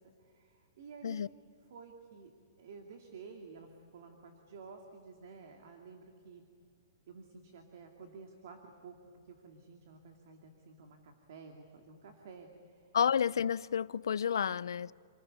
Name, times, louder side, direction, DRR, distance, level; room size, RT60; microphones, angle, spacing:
voice 1, 0.0-1.3 1.7-2.3 2.6-6.4 7.1-9.0 9.2-13.0 14.5-14.6, right 5 dB, 45° right, 2.5 m, -52 dB
voice 2, 12.9-14.9, left 8 dB, 85° left, 0.6 m, -30 dB
28.5 x 20.0 x 9.9 m
hypercardioid pair, 180°, 2 cm